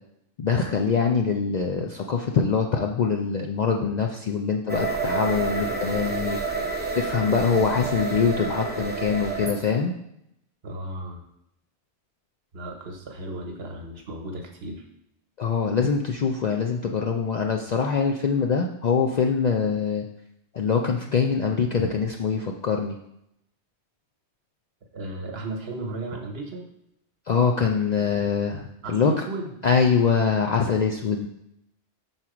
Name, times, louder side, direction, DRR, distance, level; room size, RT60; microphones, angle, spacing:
voice 1, 0.4-6.4 7.0-9.9 15.4-20.0 20.5-23.0 27.3-29.1 29.6-31.3, left 6 dB, 55° left, 2 dB, 0.5 m, -24 dB
sound 1, 4.7-9.6, right 4 dB, 10° right, 0.7 m, -29 dB
voice 2, 10.6-11.2 12.5-14.8 24.9-26.7 28.8-29.5, right 2 dB, 65° right, 3 dB, 1.2 m, -35 dB
5.9 x 4.0 x 4.9 m, 0.78 s
omnidirectional pair, 1.1 m